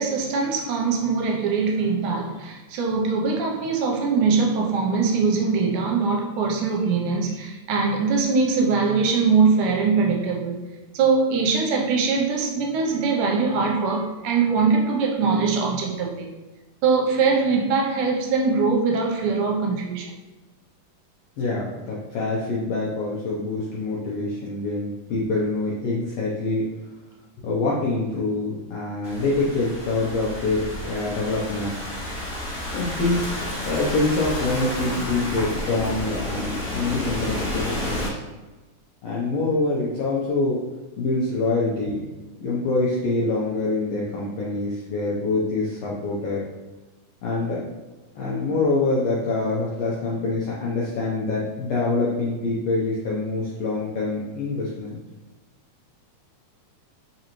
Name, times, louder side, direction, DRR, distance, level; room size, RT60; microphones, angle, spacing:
voice 1, 0.0-10.6 10.9-16.3 16.8-20.1, right 4 dB, 80° right, 0 dB, 2.0 m, -22 dB
voice 2, 21.4-26.7 27.4-31.7 32.7-38.2 39.0-40.6 41.0-42.0 42.4-46.4 47.2-47.6 48.1-55.0, left 3 dB, 80° left, -6 dB, 1.5 m, -25 dB
Thunderstorm / Rain, 29.0-38.1, left 1 dB, 55° left, 1.0 m, -31 dB
4.6 x 3.9 x 2.9 m, 1.2 s
omnidirectional pair, 3.8 m